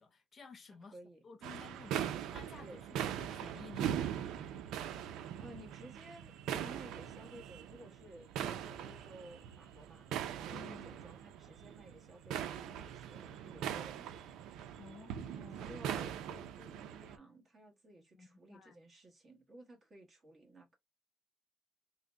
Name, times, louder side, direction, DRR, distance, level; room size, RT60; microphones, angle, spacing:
voice 1, 0.0-1.0 1.2-2.7 3.2-4.0 10.5-10.9 14.8-15.7 18.1-18.8, left 4 dB, 30° left, 0.5 m, -53 dB
voice 2, 0.9-1.2 2.6-2.8 5.4-10.1 10.4-14.2 15.5-20.8, right 1 dB, 25° right, 1.1 m, -55 dB
sound 1, 1.4-17.2, right 9 dB, 85° right, 0.4 m, -41 dB
3.8 x 2.1 x 3.4 m
cardioid pair, 165°, 0 cm